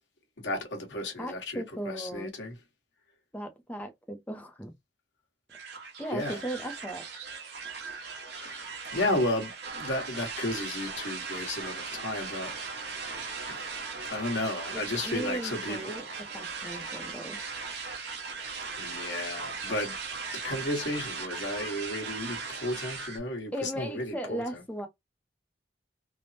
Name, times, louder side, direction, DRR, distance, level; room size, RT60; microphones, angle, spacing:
voice 1, 0.4-2.5 6.1-6.5 8.2-12.5 13.5-13.7 14.1-16.1 18.8-20.0 20.3-24.6, left 1 dB, 90° left, 1.2 m, -33 dB
voice 2, 1.2-2.3 3.3-4.7 6.0-7.0 14.7-16.0 16.3-17.4 23.5-24.9, right 1 dB, 10° left, 0.5 m, -37 dB
sound 1, 5.5-23.2, right 4 dB, 70° right, 1.1 m, -38 dB
3.3 x 2.0 x 2.6 m
head